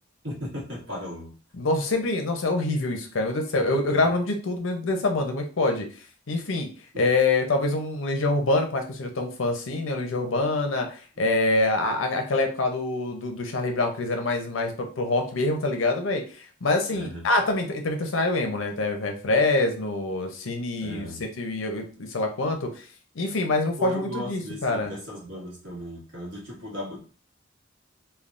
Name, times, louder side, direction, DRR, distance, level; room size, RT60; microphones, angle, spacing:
voice 1, 0.2-1.3 3.5-3.8 6.9-7.0 16.9-17.2 20.8-21.2 23.8-27.0, equal, 65° right, -4 dB, 1.4 m, -36 dB
voice 2, 1.5-5.9 6.3-6.7 7.0-21.1 21.4-22.9 23.1-24.9, left 2 dB, 80° left, 4 dB, 0.7 m, -25 dB
3.3 x 2.2 x 2.5 m, 0.38 s
head